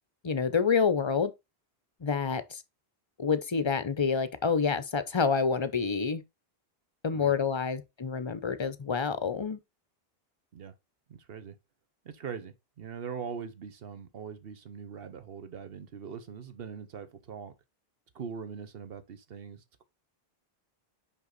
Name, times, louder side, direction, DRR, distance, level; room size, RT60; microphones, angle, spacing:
voice 1, 0.2-1.3 2.0-2.6 3.2-6.2 7.0-9.6, left 5 dB, 35° left, 0.6 m, -28 dB
voice 2, 11.1-11.5 12.0-17.5 18.1-19.8, right 6 dB, 70° right, 1.1 m, -42 dB
5.8 x 5.4 x 4.0 m
omnidirectional pair, 1.0 m